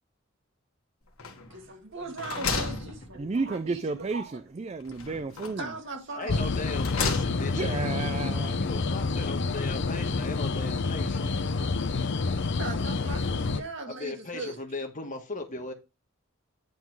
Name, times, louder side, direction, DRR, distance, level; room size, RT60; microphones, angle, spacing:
sound 1, 1.2-1.7 2.0-3.6 4.9-5.7 6.4-7.7, left 4 dB, 75° left, 1.5 m, -34 dB
voice 1, 1.5-4.4 5.6-6.5 11.8-11.9 12.3-14.6, right 3 dB, 60° right, 1.8 m, -39 dB
voice 2, 3.2-5.6 7.6-8.5, right 4 dB, 30° right, 0.4 m, -32 dB
voice 3, 6.1-11.3 13.9-15.7, left 2 dB, 40° left, 1.3 m, -38 dB
sound 2, 6.3-13.6, left 4 dB, 55° left, 0.6 m, -28 dB
9.3 x 3.8 x 4.7 m
head